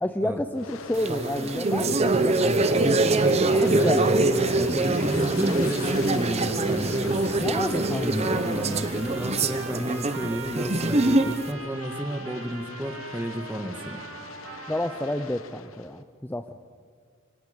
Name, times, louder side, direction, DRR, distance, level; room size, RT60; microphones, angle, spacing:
voice 1, 0.0-3.1 3.5-4.0 7.4-8.4 14.7-16.5, left 1 dB, 10° left, 8 dB, 0.6 m, -30 dB
Aircraft, 0.5-10.6 11.1-16.0, left 4 dB, 85° left, 1.1 m, -41 dB
sound 1, 1.0-11.5, right 2 dB, 30° right, 0.9 m, -24 dB
voice 2, 3.5-4.1 4.5-7.4 7.8-14.0, equal, 10° right, 6 dB, 1.5 m, -32 dB
Trumpet, 7.6-15.4, right 3 dB, 80° right, 5.1 m, -41 dB
26.5 x 25.0 x 5.2 m, 2.1 s
head